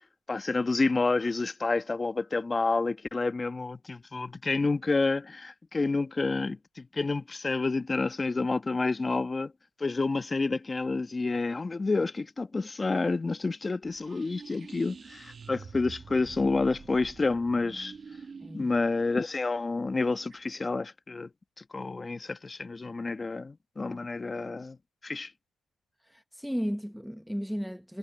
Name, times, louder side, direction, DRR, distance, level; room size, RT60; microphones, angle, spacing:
voice 1, 0.3-9.5 9.8-17.9 18.5-21.3 21.7-24.8 25.0-25.3, left 3 dB, 25° left, 1.2 m, -29 dB
sound 1, 13.8-20.6, right 5 dB, 40° right, 1.7 m, -48 dB
voice 2, 18.4-18.7 26.1-28.0, equal, ahead, 0.8 m, -34 dB
cardioid pair, 90°, 0 cm